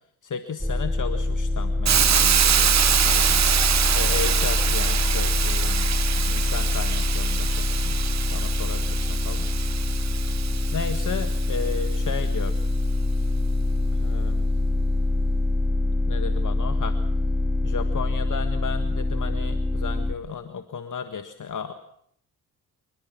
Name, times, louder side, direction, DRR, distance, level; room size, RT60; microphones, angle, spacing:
voice 1, 0.2-3.7 3.9-5.9 6.3-8.0 8.3-9.5 10.7-12.6 13.9-14.5 16.1-17.0 17.6-21.7, left 6 dB, 55° left, 8 dB, 1.6 m, -34 dB
sound 1, 0.6-20.1, left 2 dB, ahead, 2.2 m, -24 dB
Hiss, 1.9-11.7, right 9 dB, 45° right, 0.8 m, -25 dB
26.5 x 20.5 x 6.1 m, 0.69 s
supercardioid pair, 60°, 38 cm